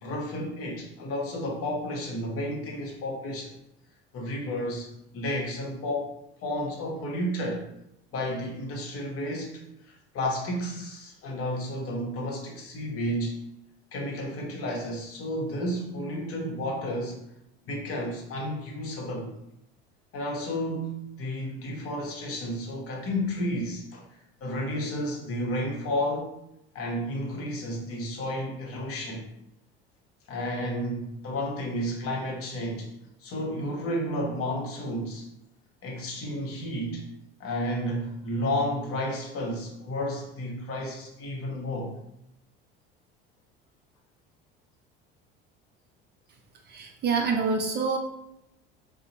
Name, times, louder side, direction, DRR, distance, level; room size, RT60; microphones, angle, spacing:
voice 1, 0.0-3.5 4.1-6.2 6.4-7.6 8.1-13.4 13.9-17.2 17.7-19.3 20.1-26.3 26.7-29.2 30.3-32.9 33.2-35.3 35.8-37.0 37.4-41.9, equal, 50° left, -1 dB, 0.9 m, -32 dB
voice 2, 46.7-48.0, right 4 dB, 35° right, 3 dB, 0.4 m, -26 dB
2.7 x 2.0 x 2.7 m, 0.81 s
hypercardioid pair, 70°, 30 cm